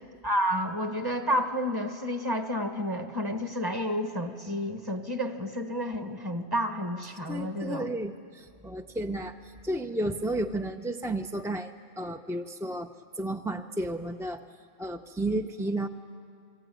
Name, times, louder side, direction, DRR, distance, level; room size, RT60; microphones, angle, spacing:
voice 1, 0.2-7.9, equal, 20° right, 6 dB, 1.4 m, -30 dB
voice 2, 7.3-14.4 14.8-15.9, right 1 dB, 5° right, 5 dB, 0.4 m, -32 dB
28.5 x 22.0 x 9.2 m, 2.3 s
omnidirectional pair, 1.2 m